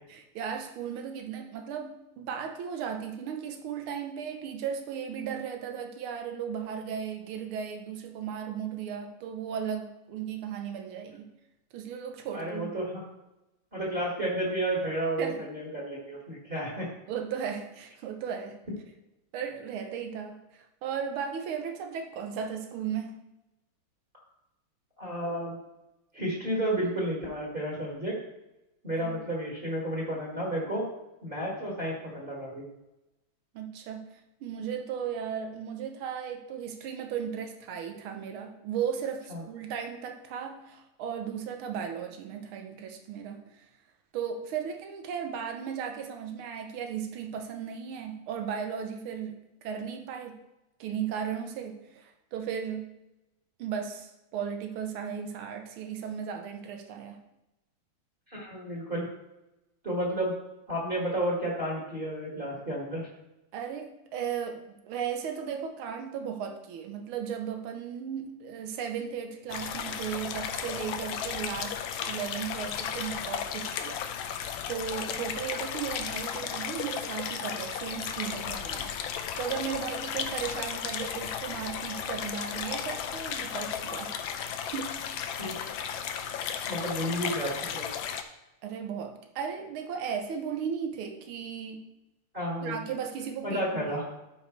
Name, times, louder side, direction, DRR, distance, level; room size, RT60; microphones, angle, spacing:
voice 1, 0.1-11.3 11.7-12.7 15.2-15.4 17.1-18.6 19.3-23.2 29.0-29.2 33.5-43.7 44.1-50.4 50.8-53.0 53.6-57.2 63.5-78.9 79.4-84.2 84.7-85.4 88.6-91.8 92.6-94.0, right 7 dB, 85° right, 4 dB, 1.7 m, -36 dB
voice 2, 12.3-13.0 13.7-16.9 25.0-25.6 26.1-28.1 28.8-30.8 31.2-32.6 39.3-39.4 58.3-59.1 59.8-60.3 60.7-63.1 85.4-85.6 86.7-87.9 92.3-92.8 93.4-94.1, right 1 dB, 25° right, -5 dB, 2.0 m, -31 dB
sound 1, 69.5-88.2, left 8 dB, 80° left, 1.4 m, -34 dB
12.5 x 5.0 x 3.2 m, 0.94 s
omnidirectional pair, 2.2 m